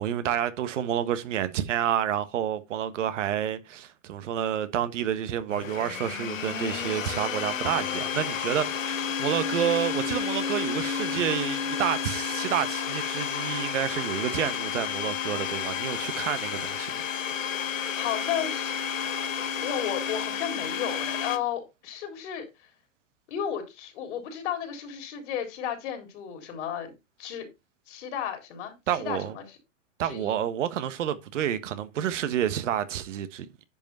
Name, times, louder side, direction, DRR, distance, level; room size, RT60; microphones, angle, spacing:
voice 1, 0.0-17.0 28.9-29.3 30.0-33.5, right 10 dB, 70° right, 1.4 m, -29 dB
Domestic sounds home sounds, 5.5-21.4, left 7 dB, 85° left, 1.3 m, -31 dB
voice 2, 17.9-18.9 19.6-22.7 23.3-26.9 27.2-27.5 27.9-29.6 30.0-30.4, left 9 dB, 60° left, 3.8 m, -34 dB
10.5 x 5.4 x 4.3 m
hypercardioid pair, 110°, 38 cm